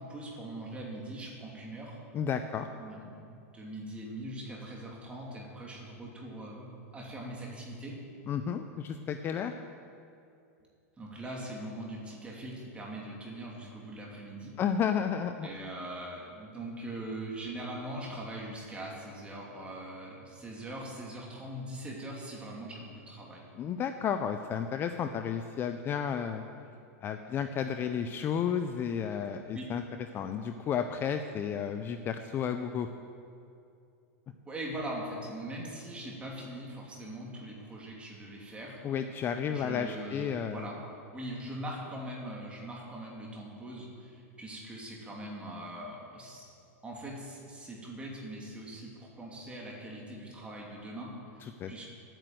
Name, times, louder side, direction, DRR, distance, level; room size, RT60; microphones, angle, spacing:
voice 1, 0.0-2.0 2.8-7.9 11.0-14.6 15.4-23.4 29.5-29.6 34.4-38.8 39.5-40.8 41.1-46.5 46.8-51.9, right 1 dB, 15° right, -2 dB, 2.7 m, -41 dB
voice 2, 2.1-2.7 8.3-9.5 14.6-15.5 23.5-26.4 27.0-29.8 30.1-32.9 38.8-40.7 51.6-51.7, left 8 dB, 25° left, 8 dB, 0.5 m, -32 dB
12.0 x 9.2 x 7.7 m, 2.5 s
supercardioid pair, 140°, 8 cm